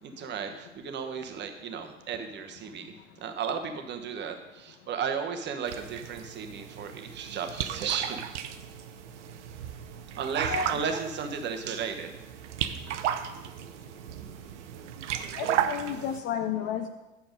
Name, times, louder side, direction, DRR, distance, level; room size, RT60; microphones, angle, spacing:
voice 1, 0.0-8.3 10.2-12.2, right 6 dB, 25° right, 6 dB, 1.0 m, -34 dB
sound 1, 5.7-16.2, right 10 dB, 60° right, 0.7 m, -35 dB
voice 2, 15.3-16.9, left 9 dB, 30° left, 8 dB, 0.5 m, -32 dB
8.8 x 6.9 x 5.1 m, 1.1 s
figure-of-eight pair, 90°, 40 cm